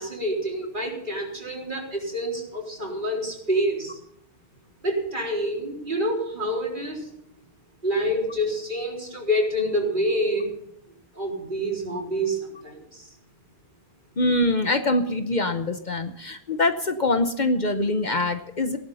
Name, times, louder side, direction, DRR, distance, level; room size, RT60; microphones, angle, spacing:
voice 1, 0.0-4.0 4.8-7.1 7.8-10.5 11.1-13.1, equal, 50° right, -1 dB, 4.1 m, -27 dB
voice 2, 14.2-18.8, left 2 dB, 45° left, 8 dB, 1.0 m, -24 dB
17.0 x 11.5 x 5.6 m, 0.74 s
omnidirectional pair, 1.1 m